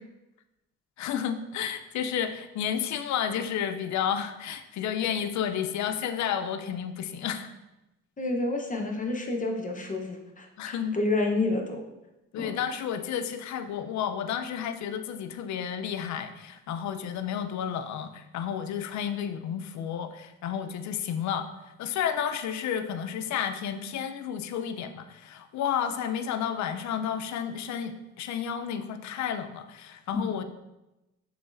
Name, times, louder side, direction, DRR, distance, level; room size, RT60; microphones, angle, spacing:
voice 1, 1.0-7.5 10.6-10.9 12.3-21.5 21.8-30.4, left 8 dB, 65° left, 9 dB, 0.5 m, -31 dB
voice 2, 8.2-11.8 12.4-12.6 30.1-30.2, left 2 dB, 25° left, 2 dB, 0.7 m, -29 dB
6.8 x 3.1 x 2.5 m, 0.98 s
cardioid pair, 90°, 30 cm